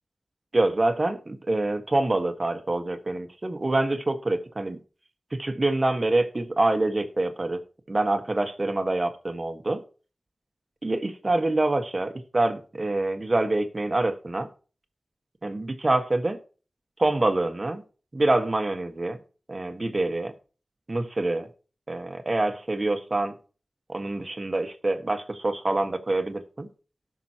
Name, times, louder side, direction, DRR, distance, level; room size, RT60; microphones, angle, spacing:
voice 1, 0.5-4.8 5.3-7.6 7.9-9.8 10.8-14.5 15.4-16.4 17.0-17.8 18.1-19.2 19.5-20.3 20.9-21.5 21.9-23.3 23.9-26.7, right 2 dB, 40° right, 7 dB, 1.4 m, -26 dB
18.0 x 6.2 x 2.9 m, 0.36 s
wide cardioid pair, 70°, 0 cm